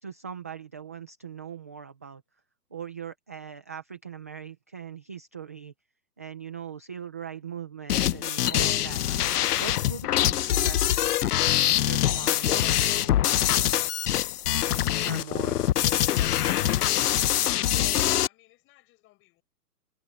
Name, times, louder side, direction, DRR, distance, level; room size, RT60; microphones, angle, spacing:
voice 1, 0.0-2.2 2.7-5.7 6.2-9.2 9.6-11.1 11.7-13.2 15.0-15.6, right 7 dB, 10° right, 0.4 m, -40 dB
sound 1, 7.9-18.3, left 12 dB, 70° left, 0.8 m, -24 dB
voice 2, 18.2-19.4, left 18 dB, 25° left, 6.5 m, -62 dB
hypercardioid pair, 145°, 47 cm